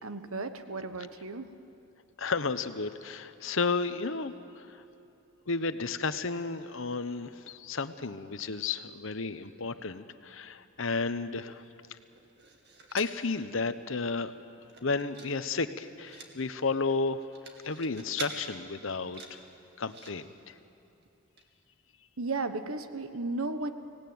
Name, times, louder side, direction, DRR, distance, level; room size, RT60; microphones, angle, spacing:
voice 1, 0.0-1.5 22.2-23.7, right 3 dB, 80° right, 9 dB, 1.3 m, -34 dB
voice 2, 2.2-4.8 5.5-11.6 12.9-14.3 14.8-17.2 17.6-19.4 19.8-20.5, left 4 dB, 65° left, 11 dB, 0.9 m, -32 dB
sound 1, 12.1-13.2 13.7-13.8 14.0-14.3 14.6-15.3 15.6-16.3 17.1-18.3 18.9-20.1 21.0-21.1 21.4-21.5, right 4 dB, 50° right, 2.4 m, -45 dB
25.0 x 18.0 x 9.4 m, 2.8 s
head